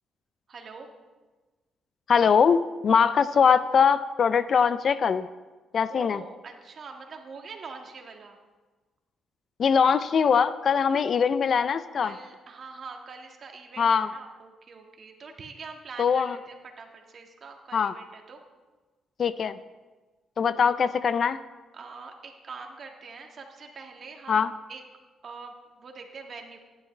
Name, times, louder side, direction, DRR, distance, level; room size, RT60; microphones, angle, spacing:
voice 1, 0.5-0.9 5.9-8.4 12.0-18.4 21.7-24.8 25.2-26.6, right 4 dB, 50° right, 3 dB, 1.7 m, -44 dB
voice 2, 2.1-5.3 5.7-6.2 9.6-12.1 13.8-14.1 16.0-16.4 17.7-17.9 19.2-19.5 20.4-21.4 24.3-24.5, left 6 dB, 50° left, 15 dB, 0.4 m, -22 dB
16.5 x 10.5 x 3.3 m, 1.3 s
cardioid pair, 90°, 0 cm